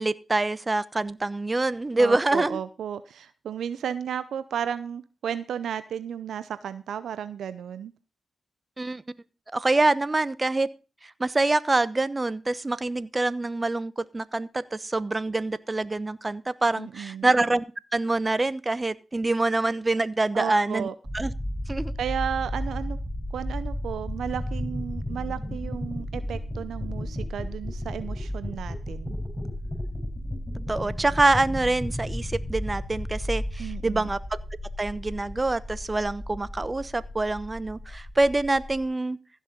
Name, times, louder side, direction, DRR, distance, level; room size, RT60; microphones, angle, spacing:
voice 1, 0.0-2.6 8.8-9.0 9.5-10.7 11.2-20.9 21.1-21.3 21.7-21.9 30.7-34.4 34.8-39.2, right 2 dB, 30° right, 17 dB, 1.0 m, -25 dB
voice 2, 2.0-7.9 16.8-17.3 20.3-20.9 22.0-23.0 23.3-29.1 33.6-34.1, right 8 dB, 80° right, 14 dB, 0.6 m, -33 dB
sound 1, 21.0-38.8, left 1 dB, 5° left, 4.8 m, -33 dB
15.5 x 6.2 x 5.3 m, 0.33 s
supercardioid pair, 40°, 0 cm